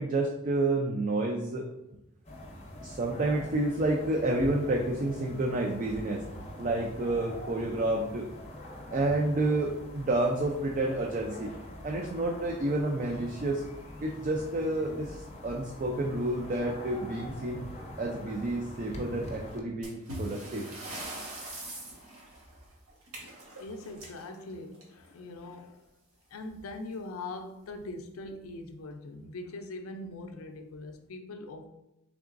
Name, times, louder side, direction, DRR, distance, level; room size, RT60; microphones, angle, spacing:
voice 1, 0.0-1.7 2.8-6.2 6.6-8.3 8.9-11.5 11.8-13.6 14.0-17.7 18.0-20.7, right 2 dB, 35° right, 1 dB, 0.3 m, -29 dB
sound 1, 2.2-19.6, left 1 dB, 30° left, 0.6 m, -44 dB
sound 2, 19.8-25.2 26.5-26.6 26.9-27.0 27.7-27.8 28.4-28.7, right 1 dB, 85° right, 1.1 m, -42 dB
voice 2, 23.3-25.8 26.3-31.7, left 2 dB, 80° left, 6 dB, 0.4 m, -42 dB
3.8 x 3.5 x 2.5 m, 0.90 s
head